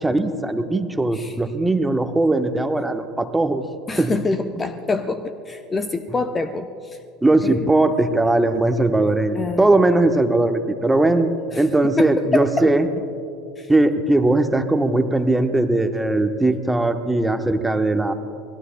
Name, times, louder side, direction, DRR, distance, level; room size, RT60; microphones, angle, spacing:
voice 1, 0.0-3.6 4.0-4.1 7.2-11.3 11.6-12.9 13.7-18.1, right 2 dB, 10° right, 7 dB, 1.1 m, -19 dB
voice 2, 3.9-7.0 7.4-7.6 9.3-9.9 11.5-11.6 12.0-12.7 13.6-13.7, left 3 dB, 20° left, 9 dB, 0.7 m, -26 dB
29.5 x 21.0 x 2.3 m, 2.5 s
figure-of-eight pair, 70°, 0 cm